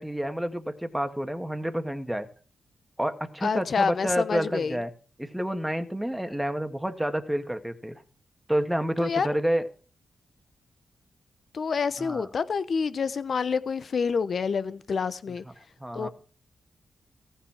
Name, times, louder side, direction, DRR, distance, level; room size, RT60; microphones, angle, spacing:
voice 1, 0.0-2.3 3.0-4.9 5.2-8.0 8.5-9.7 12.0-12.3 15.8-16.1, equal, 5° right, 1.8 m, -29 dB
voice 2, 3.4-4.8 9.0-9.3 11.5-15.4 15.9-16.1, left 5 dB, 60° left, 0.9 m, -27 dB
15.0 x 5.6 x 7.3 m
supercardioid pair, 50°, 0 cm